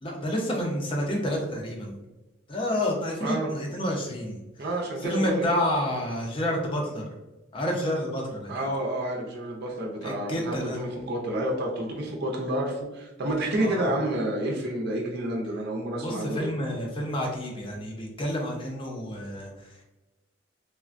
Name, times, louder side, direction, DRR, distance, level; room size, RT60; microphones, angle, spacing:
voice 1, 0.0-2.0 2.5-4.7 5.0-7.1 7.5-8.5 10.0-10.8 13.6-13.9 16.0-19.8, equal, 25° left, -1 dB, 0.5 m, -29 dB
voice 2, 3.2-3.5 4.6-5.4 8.5-16.5, right 1 dB, 55° right, -1 dB, 0.5 m, -29 dB
3.3 x 2.1 x 2.4 m, 1.0 s
head